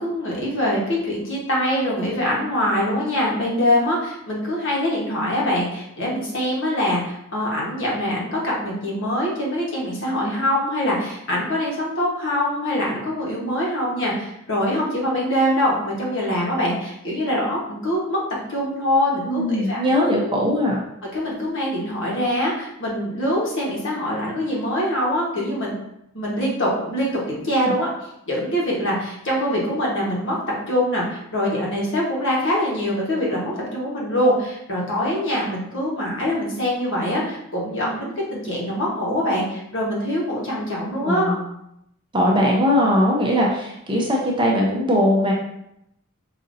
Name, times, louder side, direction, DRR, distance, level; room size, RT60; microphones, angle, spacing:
voice 1, 0.0-19.8 21.1-25.8 26.1-27.9 28.3-30.4 30.7-41.4, equal, 55° left, -4 dB, 1.2 m, -24 dB
voice 2, 19.3-20.8 27.6-27.7 41.0-41.3 42.1-45.3, equal, 20° right, -2 dB, 0.6 m, -20 dB
5.0 x 2.7 x 2.6 m, 0.79 s
head